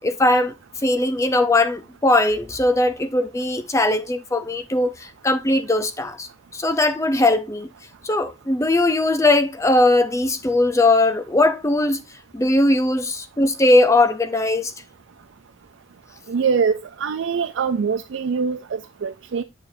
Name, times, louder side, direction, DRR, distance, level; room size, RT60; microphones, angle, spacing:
voice 1, 0.0-0.5 0.8-7.7 8.0-12.0 12.3-14.7, left 2 dB, 15° left, 0.5 m, -19 dB
voice 2, 16.3-19.4, right 6 dB, 65° right, 0.4 m, -23 dB
7.6 x 6.8 x 2.6 m
head